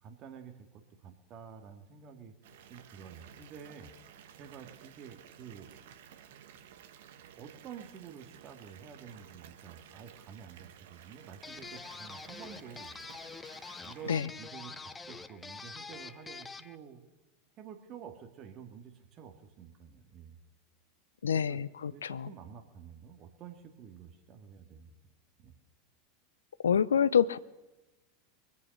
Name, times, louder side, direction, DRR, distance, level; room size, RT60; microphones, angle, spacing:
voice 1, 0.0-2.4 2.7-3.9 4.4-5.7 7.4-13.0 13.8-17.0 17.6-20.4 21.3-21.6 21.9-24.9 25.4-25.5, right 7 dB, 40° right, 5 dB, 2.2 m, -49 dB
Water tap faucet / Bathtub (filling or washing) / Fill (with liquid), 2.4-14.2, right 9 dB, 65° right, 1.4 m, -54 dB
sound 1, 11.4-16.8, left 4 dB, 15° left, 0.7 m, -46 dB
voice 2, 21.2-22.3 26.6-27.4, left 7 dB, 80° left, 18 dB, 0.5 m, -27 dB
23.5 x 8.4 x 6.7 m, 1.1 s
figure-of-eight pair, 85°, 0 cm